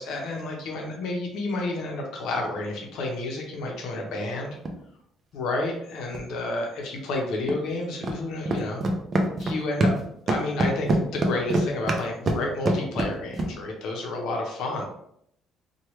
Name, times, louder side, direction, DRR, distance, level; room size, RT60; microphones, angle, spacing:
voice 1, 0.0-4.6 5.3-8.8 9.4-9.9 10.3-14.8, left 2 dB, 70° left, 1 dB, 0.7 m, -30 dB
sound 1, 4.5-4.7 6.1-6.2 7.5-7.6 8.0-8.2 8.5-10.0 10.3-13.5, right 1 dB, 30° right, 0.4 m, -24 dB
3.0 x 2.2 x 3.0 m, 0.71 s
cardioid pair, 155°, 0 cm